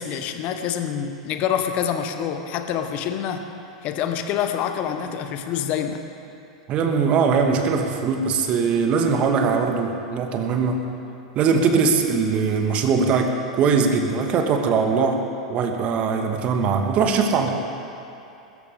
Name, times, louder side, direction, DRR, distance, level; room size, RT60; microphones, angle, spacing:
voice 1, 0.0-3.5 3.8-6.0, left 9 dB, 45° left, 7 dB, 1.2 m, -26 dB
voice 2, 6.7-10.8 11.3-15.2 15.5-17.5, right 5 dB, 40° right, 4 dB, 1.6 m, -21 dB
21.0 x 14.0 x 3.6 m, 2.8 s
figure-of-eight pair, 90°, 3 cm